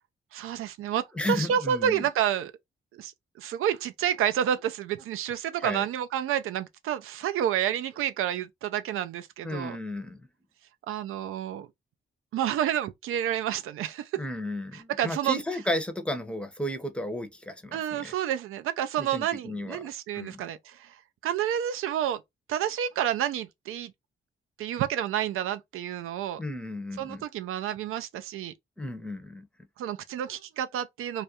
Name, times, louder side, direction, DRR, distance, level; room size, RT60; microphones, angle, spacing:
voice 1, 0.3-2.5 2.9-3.1 3.4-9.8 10.9-11.7 12.3-14.1 14.7-15.4 17.7-21.0 21.2-22.2 22.5-23.9 24.6-26.4 27.0-28.5 29.8-31.2, right 10 dB, 90° right, 0.4 m, -29 dB
voice 2, 1.1-2.0 5.6-5.8 9.4-10.2 14.2-18.1 19.0-19.8 20.1-20.4 26.4-27.2 28.8-29.5, left 1 dB, 5° left, 0.6 m, -33 dB
2.3 x 2.1 x 2.7 m
cardioid pair, 85°, 21 cm